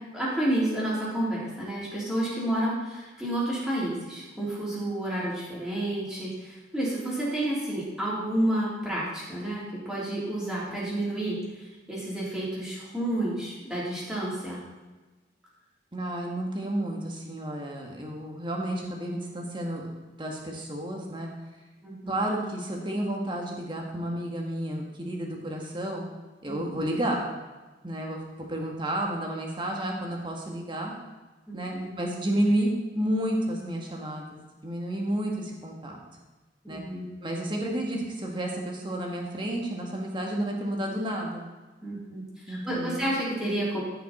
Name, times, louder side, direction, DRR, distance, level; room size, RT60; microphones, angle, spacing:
voice 1, 0.1-14.6 21.8-22.1 26.5-26.8 31.5-31.9 36.6-37.1 41.8-43.8, right 1 dB, 5° right, -8 dB, 3.4 m, -30 dB
voice 2, 15.9-19.9 20.2-21.3 22.1-26.1 26.4-27.3 27.8-28.2 28.5-30.9 31.5-36.0 36.7-36.8 37.2-41.4 42.5-43.1, right 1 dB, 25° right, 0 dB, 1.7 m, -31 dB
14.5 x 5.9 x 4.2 m, 1.2 s
head